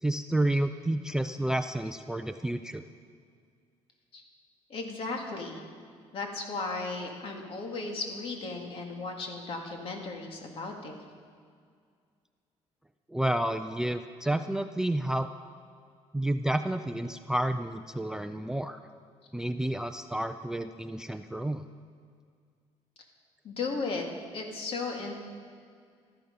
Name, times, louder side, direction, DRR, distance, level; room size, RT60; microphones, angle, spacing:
voice 1, 0.0-2.8 13.1-15.3 16.1-18.8 19.3-21.6, right 1 dB, 5° right, 9 dB, 0.4 m, -30 dB
voice 2, 4.7-5.6 6.1-11.0 23.4-24.0 24.3-25.1, left 3 dB, 55° left, 2 dB, 2.4 m, -35 dB
18.5 x 13.5 x 5.4 m, 2.1 s
cardioid pair, 140°, 12 cm